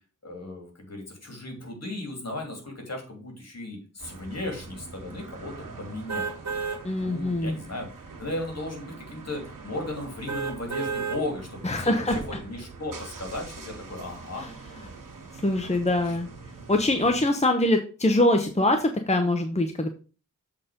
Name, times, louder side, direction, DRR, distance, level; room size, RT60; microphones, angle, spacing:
voice 1, 0.2-6.3 6.9-7.9 8.2-14.5 16.0-16.2, left 2 dB, 50° left, 2 dB, 3.2 m, -36 dB
sound 1, 4.0-17.3, right 4 dB, 80° right, 1.8 m, -44 dB
sound 2, 6.1-6.8 7.3-7.5 10.3-11.2 11.8-11.9, right 5 dB, 60° right, 1.5 m, -31 dB
voice 2, 6.8-7.5 11.6-12.2 14.4-14.5 15.4-16.3 16.7-19.9, left 1 dB, 20° left, 5 dB, 0.9 m, -23 dB
7.5 x 4.4 x 5.2 m, 0.36 s
wide cardioid pair, 70°, 32 cm